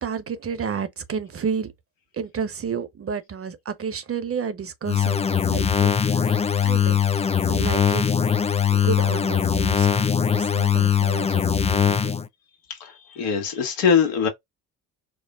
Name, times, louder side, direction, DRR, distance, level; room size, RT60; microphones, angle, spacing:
voice 1, 0.0-1.7 2.1-7.0 7.5-8.1 8.7-12.1, right 6 dB, 35° right, 1.0 m, -31 dB
sound 1, 4.9-12.3, left 8 dB, 15° left, 0.4 m, -21 dB
voice 2, 12.7-14.3, left 6 dB, 80° left, 1.4 m, -22 dB
4.7 x 2.1 x 3.6 m
hypercardioid pair, 60°, 40 cm